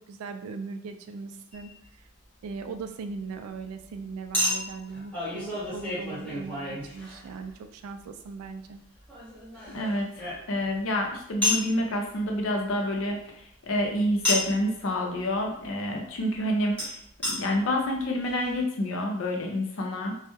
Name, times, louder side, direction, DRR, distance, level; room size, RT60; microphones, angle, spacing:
voice 1, 0.1-2.1 2.4-8.8, right 4 dB, 85° right, 11 dB, 0.3 m, -39 dB
Chink clink, 1.5-1.7 4.3-7.5 9.1-10.8 11.4-11.7 14.2-14.6 16.8-16.9 17.2-17.3 18.0-18.1 18.3-18.4, left 1 dB, 5° left, 0.8 m, -30 dB
voice 2, 9.7-17.0 17.2-20.2, left 1 dB, 65° left, 2 dB, 0.5 m, -28 dB
2.2 x 2.0 x 2.9 m, 0.69 s
head